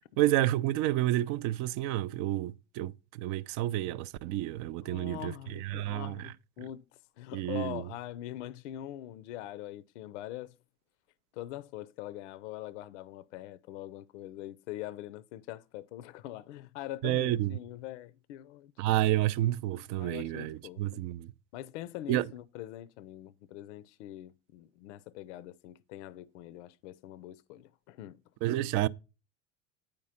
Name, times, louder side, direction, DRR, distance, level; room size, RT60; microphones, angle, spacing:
voice 1, 0.2-2.9 3.2-6.3 7.3-7.9 17.0-17.5 18.8-21.3 22.1-22.3 28.4-28.9, right 14 dB, 50° right, 0.5 m, -30 dB
voice 2, 4.8-6.8 7.2-10.5 11.3-19.0 19.7-21.0 21.5-28.2, left 14 dB, 70° left, 0.6 m, -43 dB
8.6 x 5.2 x 5.5 m
hypercardioid pair, 85°, 37 cm